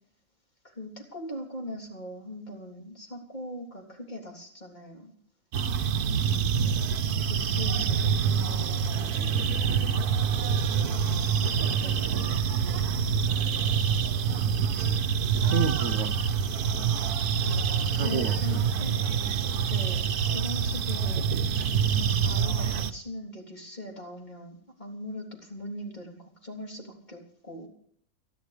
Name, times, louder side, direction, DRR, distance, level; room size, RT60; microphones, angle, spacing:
voice 1, 0.6-5.1 6.5-7.0 7.3-9.4 11.4-12.3 17.4-19.0 19.3-19.4 19.7-21.3 21.9-27.7, left 1 dB, 30° left, 0 dB, 3.5 m, -41 dB
sound 1, 5.5-22.9, right 7 dB, 80° right, 1.4 m, -26 dB
voice 2, 14.6-15.0 15.3-16.4 17.8-18.7, right 5 dB, 60° right, 9 dB, 1.0 m, -32 dB
29.5 x 11.0 x 3.3 m, 0.64 s
omnidirectional pair, 1.6 m